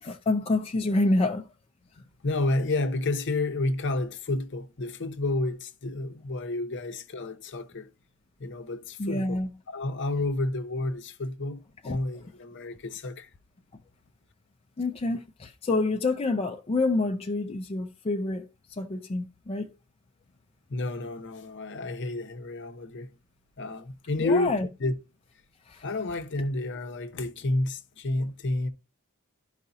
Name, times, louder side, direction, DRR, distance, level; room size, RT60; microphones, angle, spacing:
voice 1, 0.0-1.5 9.0-9.5 11.8-12.0 14.8-18.5 18.8-19.7 24.2-24.7 25.7-25.8, left 2 dB, 25° left, 0.4 m, -27 dB
voice 2, 2.2-7.9 8.4-9.4 9.7-13.3 20.7-23.2 23.6-24.5 24.8-25.0 25.8-28.7, left 2 dB, 55° left, 0.8 m, -30 dB
12.0 x 4.8 x 2.7 m
head